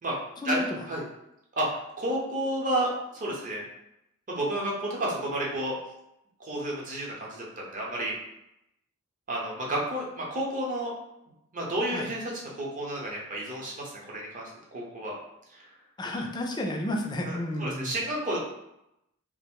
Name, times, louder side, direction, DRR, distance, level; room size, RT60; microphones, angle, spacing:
voice 1, 0.4-0.8 11.9-12.1 16.0-18.0, left 1 dB, 20° left, 2 dB, 0.3 m, -31 dB
voice 2, 1.6-3.6 4.3-5.8 6.4-8.1 9.3-10.9 11.5-15.1 15.5-15.6 17.3-18.4, right 1 dB, 35° right, -3 dB, 0.7 m, -31 dB
2.4 x 2.0 x 3.5 m, 0.85 s
head